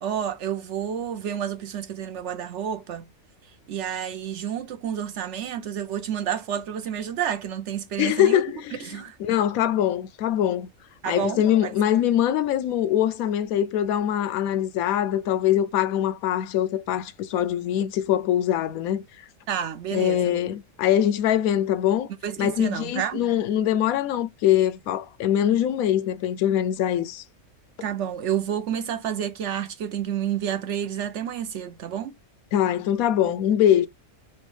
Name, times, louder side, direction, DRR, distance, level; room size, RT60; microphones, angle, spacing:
voice 1, 0.0-3.1 3.7-8.4 8.8-9.2 11.0-11.7 19.5-20.4 22.2-23.2 27.8-32.1, right 9 dB, 65° right, 0.8 m, -30 dB
voice 2, 8.0-8.9 9.2-10.7 11.1-19.0 19.9-22.1 22.4-27.2 32.5-33.9, left 11 dB, 85° left, 1.0 m, -23 dB
4.5 x 2.3 x 3.2 m
omnidirectional pair, 1.4 m